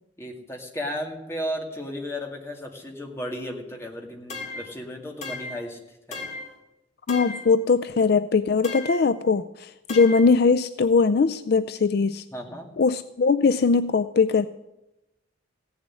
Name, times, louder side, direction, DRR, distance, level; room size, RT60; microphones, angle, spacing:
voice 1, 0.2-6.3 12.3-12.7, equal, 15° left, 1 dB, 2.1 m, -34 dB
sound 1, 4.3-4.7 5.2-5.7 6.1-6.6 7.1-7.5 8.6-9.1 9.9-10.3, left 3 dB, 35° left, 2.4 m, -36 dB
voice 2, 7.1-12.2 12.8-14.5, left 4 dB, 55° left, 13 dB, 0.4 m, -21 dB
16.0 x 7.2 x 9.7 m, 0.93 s
head